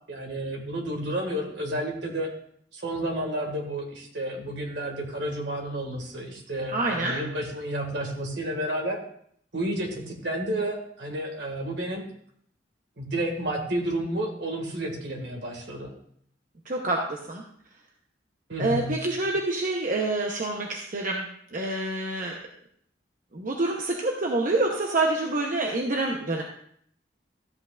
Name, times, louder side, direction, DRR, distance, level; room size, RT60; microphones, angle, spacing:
voice 1, 0.1-2.3 2.7-9.0 9.5-12.0 13.0-15.9 18.5-18.9, right 1 dB, 70° right, 1 dB, 1.9 m, -31 dB
voice 2, 6.7-7.2 16.7-17.4 18.6-22.3 23.3-26.4, right 2 dB, 45° right, 0 dB, 0.9 m, -27 dB
13.0 x 8.0 x 2.5 m, 0.65 s
head